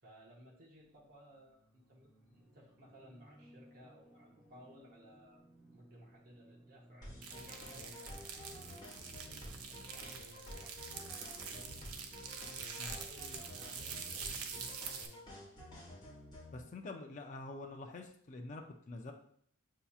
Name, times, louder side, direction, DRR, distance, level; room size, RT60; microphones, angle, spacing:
voice 1, 0.0-5.4 5.7-11.9 12.8-14.9, equal, 40° right, -4 dB, 0.8 m, -60 dB
sound 1, 0.8-10.7, equal, ahead, 0.8 m, -63 dB
sound 2, 7.0-16.6, left 1 dB, 20° left, 1.7 m, -51 dB
sound 3, 7.2-15.1, right 6 dB, 85° right, 0.6 m, -45 dB
voice 2, 16.5-19.1, left 2 dB, 35° left, 3 dB, 0.4 m, -46 dB
6.7 x 2.8 x 2.3 m, 0.63 s
head